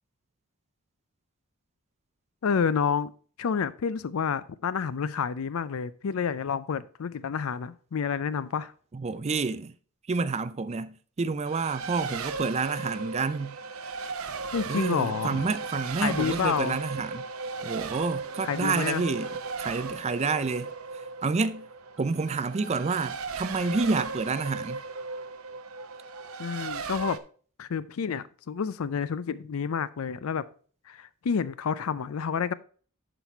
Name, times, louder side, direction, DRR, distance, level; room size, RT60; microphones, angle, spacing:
voice 1, 2.4-3.1 3.4-8.7 14.5-15.4 16.0-16.8 18.4-19.0 26.4-27.2 27.6-30.4 30.9-32.5, left 6 dB, 75° left, 0.5 m, -29 dB
voice 2, 8.9-9.7 10.1-13.6 14.7-17.2 17.6-19.3 19.6-20.7 21.2-21.7 22.0-24.8, right 4 dB, 30° right, 0.4 m, -29 dB
Race car auto racing, 11.5-27.2, right 4 dB, 90° right, 0.8 m, -37 dB
11.5 x 4.1 x 4.4 m
head